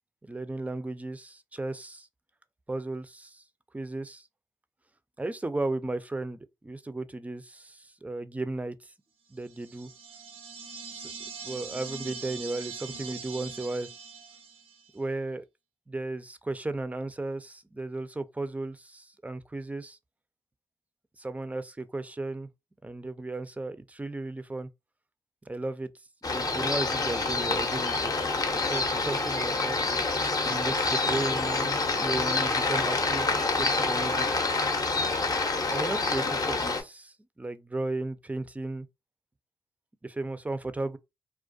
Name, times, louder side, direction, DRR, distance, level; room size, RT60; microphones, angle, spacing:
voice 1, 0.3-2.1 2.7-3.4 3.7-4.3 5.2-8.9 9.3-9.9 10.9-11.1 11.4-13.9 14.9-15.4 15.9-20.0 21.2-22.5 22.8-24.7 25.5-25.9 26.3-29.8 30.4-34.3 35.7-38.9 40.0-41.0, right 2 dB, 15° right, 0.3 m, -35 dB
sound 1, 9.5-14.9, right 5 dB, 80° right, 0.4 m, -42 dB
sound 2, 26.2-36.8, left 3 dB, 40° left, 0.6 m, -27 dB
2.3 x 2.1 x 2.5 m
supercardioid pair, 40°, 10 cm